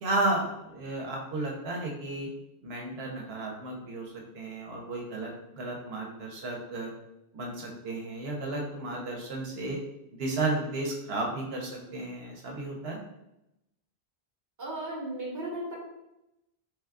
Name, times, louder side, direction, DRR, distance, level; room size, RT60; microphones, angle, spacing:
voice 1, 0.0-2.3 2.6-6.9 7.3-9.8 10.2-13.0, right 2 dB, 80° right, 0 dB, 0.9 m, -33 dB
voice 2, 14.6-15.7, right 1 dB, 20° right, -4 dB, 0.8 m, -35 dB
3.2 x 2.2 x 3.4 m, 0.88 s
omnidirectional pair, 1.0 m